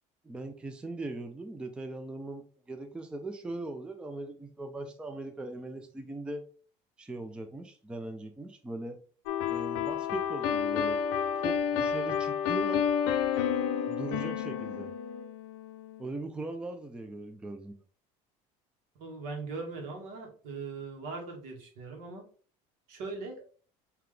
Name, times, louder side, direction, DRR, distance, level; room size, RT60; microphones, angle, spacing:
voice 1, 0.2-6.5 7.0-9.0 9.5-11.0 11.4-12.8 13.9-14.9 16.0-17.8, right 2 dB, 5° right, 6 dB, 0.4 m, -40 dB
sound 1, 9.3-16.0, left 8 dB, 90° left, 0.5 m, -30 dB
voice 2, 19.0-22.3 22.9-23.4, right 3 dB, 75° right, 1 dB, 1.5 m, -40 dB
3.7 x 2.9 x 3.3 m, 0.40 s
cardioid pair, 140°, 14 cm